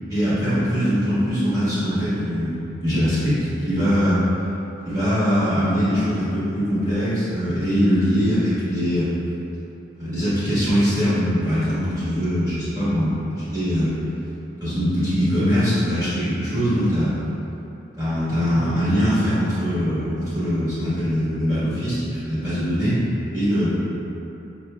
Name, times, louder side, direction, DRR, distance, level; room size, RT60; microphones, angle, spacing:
voice 1, 0.1-2.6 2.8-4.2 4.8-9.1 10.0-13.9 14.6-17.1 18.0-23.0 23.3-23.8, equal, 20° right, -14 dB, 1.3 m, -22 dB
5.3 x 3.0 x 2.3 m, 2.9 s
head